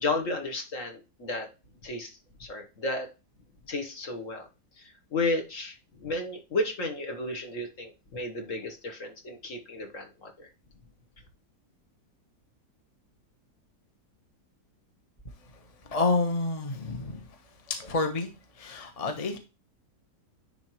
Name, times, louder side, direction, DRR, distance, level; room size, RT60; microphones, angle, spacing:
voice 1, 0.0-1.5 1.8-3.1 3.7-4.5 4.8-10.5, left 2 dB, 50° left, 4 dB, 1.6 m, -33 dB
voice 2, 15.9-17.3 17.7-18.3 18.6-19.4, left 3 dB, 25° left, 6 dB, 0.9 m, -28 dB
10.0 x 3.8 x 3.0 m, 0.29 s
omnidirectional pair, 1.8 m